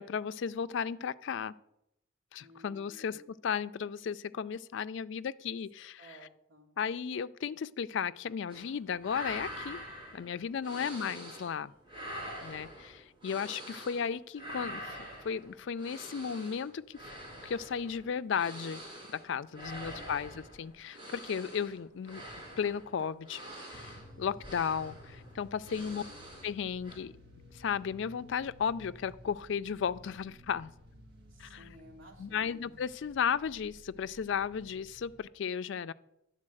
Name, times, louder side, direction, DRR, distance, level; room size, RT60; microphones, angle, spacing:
voice 1, 0.0-1.5 2.3-6.0 6.8-9.8 10.1-11.7 12.4-15.0 15.2-17.0 17.4-18.8 19.1-22.2 22.6-23.4 23.7-23.9 24.2-26.0 26.4-27.1 27.5-30.7 31.4-31.6 32.2-35.9, left 7 dB, 60° left, 14 dB, 0.3 m, -35 dB
voice 2, 2.4-3.3 6.0-6.7 10.6-11.1 19.5-20.4 25.6-26.2 31.3-32.7, equal, 70° right, 0 dB, 2.2 m, -56 dB
sound 1, 8.5-8.7 9.0-11.6 11.8-14.1 14.3-26.6 26.8-27.0, equal, 25° right, 3.2 m, -45 dB
sound 2, 23.7-35.2, left 1 dB, 50° right, 1.2 m, -55 dB
10.5 x 4.0 x 7.7 m, 0.83 s
head